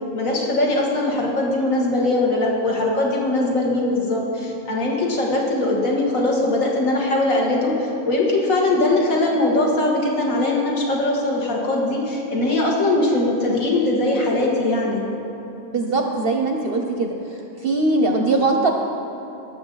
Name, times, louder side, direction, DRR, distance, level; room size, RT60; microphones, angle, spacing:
voice 1, 0.1-7.7 8.1-15.0, left 2 dB, 70° left, -2 dB, 1.9 m, -21 dB
voice 2, 15.6-17.1 17.6-18.7, right 2 dB, 55° right, 3 dB, 0.7 m, -20 dB
17.5 x 6.7 x 3.9 m, 2.9 s
omnidirectional pair, 1.5 m